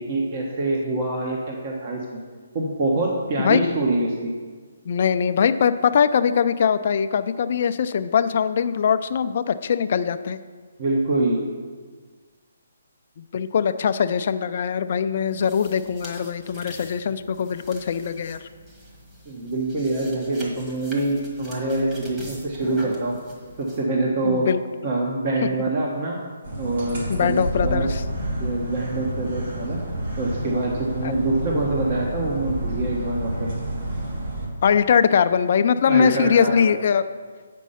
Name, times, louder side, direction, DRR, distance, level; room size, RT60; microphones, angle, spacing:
voice 1, 0.0-2.2 2.5-4.3 10.8-11.4 19.3-23.2 23.6-24.5 24.8-26.2 26.6-27.9 28.4-29.8 30.2-33.5 35.9-36.8, right 2 dB, 35° right, -1 dB, 1.1 m, -25 dB
voice 2, 4.9-10.4 13.2-18.4 24.2-24.6 25.4-25.5 27.1-28.0 31.0-31.1 34.6-37.1, left 7 dB, 45° left, 10 dB, 0.4 m, -21 dB
sound 1, 15.3-23.8, equal, 15° right, 1.5 m, -43 dB
sound 2, 26.4-34.5, right 1 dB, 60° right, 2.4 m, -29 dB
8.3 x 5.3 x 5.6 m, 1.5 s
hypercardioid pair, 160°, 0 cm